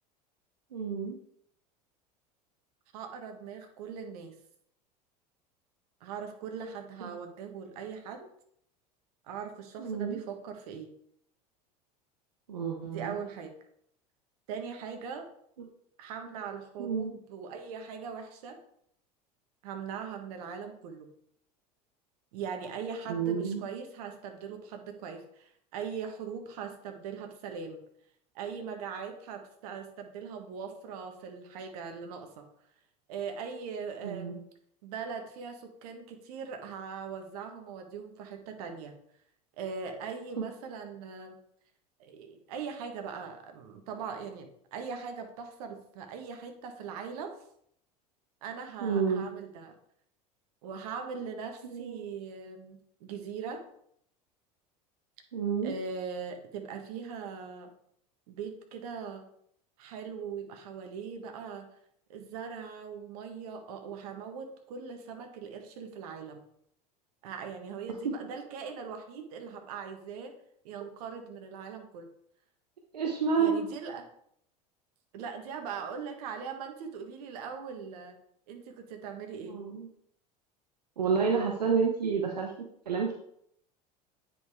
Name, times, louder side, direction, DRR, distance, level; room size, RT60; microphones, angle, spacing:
voice 1, 0.7-1.2 9.8-10.2 12.5-13.2 16.8-17.1 23.1-23.6 34.0-34.4 40.4-40.5 48.8-49.3 51.7-52.1 55.3-55.7 72.9-73.6 79.5-79.9 81.0-82.5 82.8-83.1, right 6 dB, 85° right, 1 dB, 1.0 m, -29 dB
voice 2, 2.9-4.3 6.0-8.3 9.2-10.9 12.8-13.5 14.5-15.3 16.0-18.6 19.6-21.1 22.3-27.8 28.3-32.4 33.1-34.4 34.8-38.9 39.6-41.4 42.0-47.4 48.4-49.7 50.6-53.7 55.6-57.7 58.3-59.3 59.8-61.7 62.1-66.4 67.2-70.4 70.6-72.1 73.4-74.1 75.1-78.2 78.5-79.6, right 6 dB, 65° right, 5 dB, 1.4 m, -40 dB
9.4 x 5.2 x 3.6 m, 0.69 s
hypercardioid pair, 80°, 20 cm